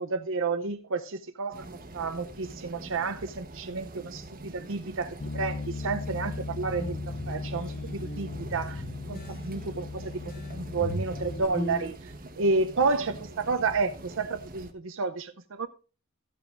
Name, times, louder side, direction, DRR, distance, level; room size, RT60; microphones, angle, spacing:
voice 1, 0.0-1.7 1.9-7.0 7.3-8.8 9.1-10.1 10.5-15.7, right 4 dB, 65° right, 0.7 m, -31 dB
sound 1, 1.5-14.7, right 2 dB, 45° right, 1.3 m, -45 dB
Bass guitar, 5.2-11.5, left 3 dB, 60° left, 0.7 m, -38 dB
sound 2, 6.6-11.9, equal, 45° left, 2.9 m, -38 dB
13.5 x 9.2 x 2.5 m
head